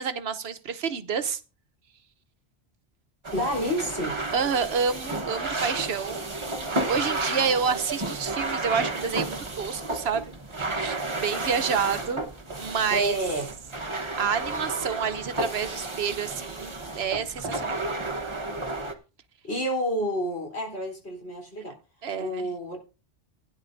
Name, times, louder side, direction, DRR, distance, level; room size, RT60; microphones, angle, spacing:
voice 1, 0.0-1.4 4.3-6.3 6.9-10.3 10.7-12.3 12.6-13.2 14.2-17.8 22.0-22.5, right 6 dB, 70° right, 1.1 m, -28 dB
sound 1, 3.2-18.9, right 2 dB, 30° right, 1.1 m, -32 dB
voice 2, 3.3-4.1 12.9-13.5 19.4-21.8 22.2-22.8, equal, 75° left, 3.9 m, -29 dB
16.5 x 10.0 x 2.6 m
omnidirectional pair, 1.1 m